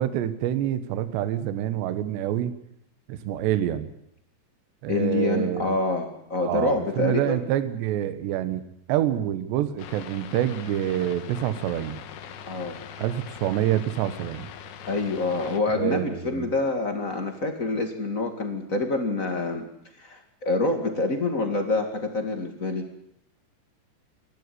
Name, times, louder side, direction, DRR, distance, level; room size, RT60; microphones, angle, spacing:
voice 1, 0.0-2.5 3.1-3.9 4.8-5.8 6.4-8.6 8.9-12.0 13.0-14.5 15.7-16.5, right 12 dB, 75° right, 12 dB, 3.3 m, -27 dB
voice 2, 4.9-7.4 12.4-12.8 14.9-19.7 20.0-22.9, left 2 dB, 30° left, 5 dB, 1.5 m, -26 dB
sound 1, 9.8-15.6, left 8 dB, 80° left, 3.7 m, -42 dB
27.0 x 12.0 x 9.8 m, 0.73 s
omnidirectional pair, 5.1 m